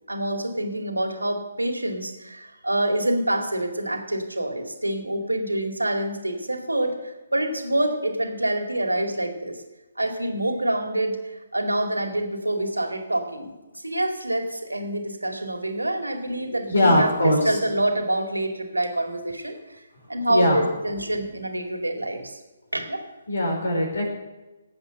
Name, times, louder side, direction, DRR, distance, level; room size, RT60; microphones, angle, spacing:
voice 1, 0.1-9.6 10.0-11.2 11.5-19.6 20.1-22.3 22.7-23.0, right 1 dB, 90° right, 4 dB, 2.3 m, -26 dB
voice 2, 16.7-17.4 20.3-20.6 23.3-24.1, left 1 dB, 75° left, 1 dB, 5.0 m, -20 dB
18.5 x 8.1 x 6.6 m, 1.1 s
figure-of-eight pair, 135°, 0 cm